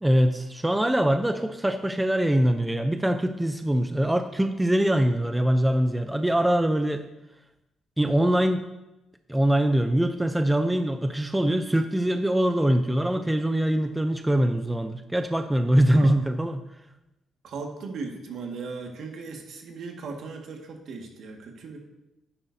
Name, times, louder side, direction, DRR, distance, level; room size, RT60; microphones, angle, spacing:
voice 1, 0.0-7.0 8.0-8.7 9.3-16.6, right 1 dB, 10° right, 8 dB, 0.6 m, -23 dB
voice 2, 17.4-21.8, right 4 dB, 65° right, 2 dB, 1.8 m, -37 dB
10.5 x 9.8 x 2.7 m, 0.95 s
cardioid pair, 90°, 0 cm